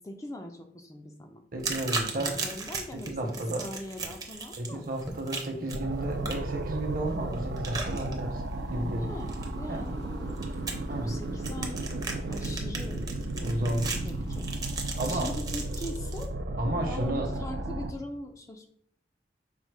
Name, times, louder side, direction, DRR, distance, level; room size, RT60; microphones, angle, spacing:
voice 1, 0.0-1.4 1.7-4.9 8.9-13.6 14.0-14.5 15.0-16.3 16.8-18.7, left 1 dB, 20° left, 5 dB, 0.3 m, -42 dB
voice 2, 1.5-2.3 2.9-3.6 4.6-8.4 8.7-9.1 9.7-9.9 10.9-11.1 13.4-13.9 15.0-15.3 16.6-17.3, right 1 dB, 50° right, 2 dB, 0.9 m, -32 dB
sound 1, 1.6-16.2, right 4 dB, 20° right, 0.6 m, -38 dB
sound 2, 5.7-17.9, right 2 dB, 80° right, 0.5 m, -34 dB
sound 3, 8.5-14.9, right 1 dB, 80° left, 0.5 m, -48 dB
5.3 x 2.0 x 4.7 m, 0.69 s
head